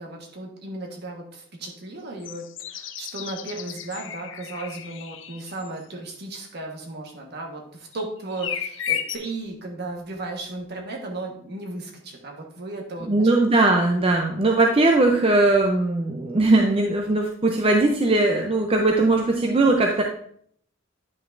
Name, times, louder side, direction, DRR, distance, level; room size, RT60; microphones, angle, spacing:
voice 1, 0.0-13.3, right 2 dB, 60° right, 1 dB, 1.4 m, -35 dB
sound 1, 2.2-5.7 7.9-8.0 8.3-9.2, left 9 dB, 70° left, 0.6 m, -33 dB
voice 2, 13.1-20.0, right 2 dB, 30° right, 2 dB, 0.6 m, -19 dB
9.4 x 5.6 x 2.6 m, 0.62 s
head